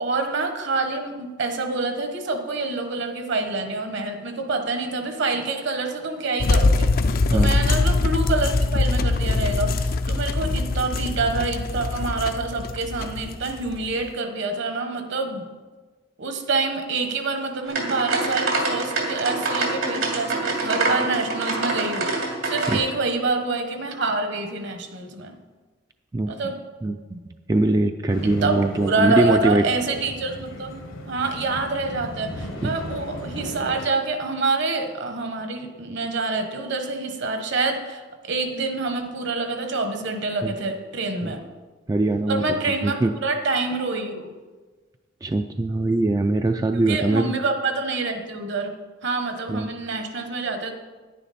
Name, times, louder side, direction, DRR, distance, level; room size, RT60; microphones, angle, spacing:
voice 1, 0.0-6.9 7.3-15.4 16.2-25.4 26.3-26.6 28.4-41.4 42.3-44.3 46.7-48.7 49.0-50.7, right 3 dB, 60° right, 6 dB, 1.2 m, -27 dB
sound 1, 6.4-14.0, left 3 dB, 45° left, 0.5 m, -22 dB
sound 2, 17.7-22.8, right 2 dB, 80° right, 2.6 m, -25 dB
voice 2, 26.8-27.2 27.5-29.6 32.5-32.7 40.4-40.5 41.2-41.3 41.9-42.6 42.8-43.1 45.2-47.4 49.5-49.7, right 2 dB, 20° right, 5 dB, 0.3 m, -22 dB
sound 3, 28.1-33.9, left 1 dB, 70° left, 1.2 m, -36 dB
10.0 x 10.0 x 4.2 m, 1.3 s
head